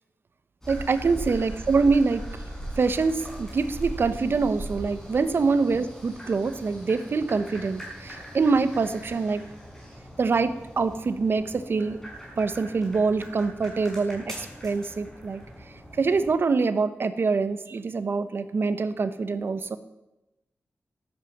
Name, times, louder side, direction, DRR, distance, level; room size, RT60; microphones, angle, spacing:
sound 1, 0.6-16.3, right 1 dB, 10° left, 6.2 m, -40 dB
voice 1, 0.7-2.4 2.8-9.4 10.2-12.0 12.4-15.4 16.0-19.8, right 4 dB, 55° right, 12 dB, 1.0 m, -25 dB
13.5 x 10.5 x 7.3 m, 0.96 s
wide cardioid pair, 110°, 5 cm